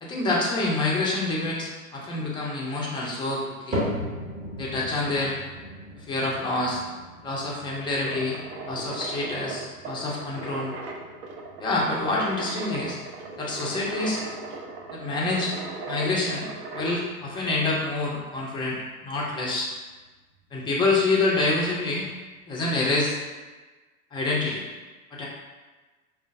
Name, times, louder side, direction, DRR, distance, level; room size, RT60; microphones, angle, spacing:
voice 1, 0.0-3.8 4.6-5.3 6.0-6.8 7.2-8.4 8.6-10.7 11.6-13.0 13.4-14.2 14.9-15.5 15.9-18.8 19.0-19.7 20.5-22.1 22.5-23.2 24.1-24.6 25.1-25.3, left 2 dB, 10° left, -4 dB, 0.4 m, -27 dB
sound 1, 3.7-20.0 20.4-20.9 21.5-21.6 22.4-22.5, equal, 15° right, 0.9 m, -39 dB
sound 2, 8.0-17.1, right 3 dB, 50° right, 0.6 m, -38 dB
4.8 x 2.3 x 2.5 m, 1.3 s
figure-of-eight pair, 90°, 44 cm